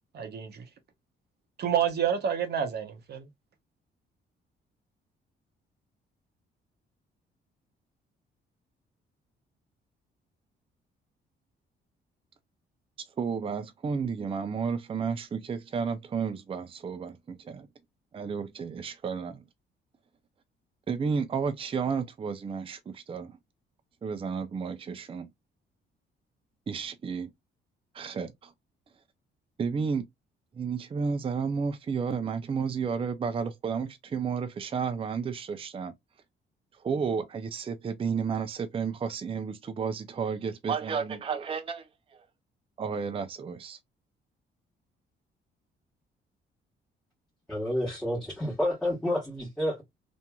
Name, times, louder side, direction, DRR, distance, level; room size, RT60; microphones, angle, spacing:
voice 1, 0.1-0.6 1.6-3.3, right 8 dB, 55° right, 0.7 m, -28 dB
voice 2, 13.2-17.7 18.1-19.4 20.9-23.4 24.0-25.3 26.7-27.3 27.9-28.5 29.6-30.1 30.5-35.9 36.8-42.2 42.8-43.8, right 6 dB, 30° right, 0.5 m, -32 dB
voice 3, 47.5-49.8, left 1 dB, 5° left, 1.1 m, -29 dB
2.9 x 2.5 x 2.2 m
cardioid pair, 90°, 20 cm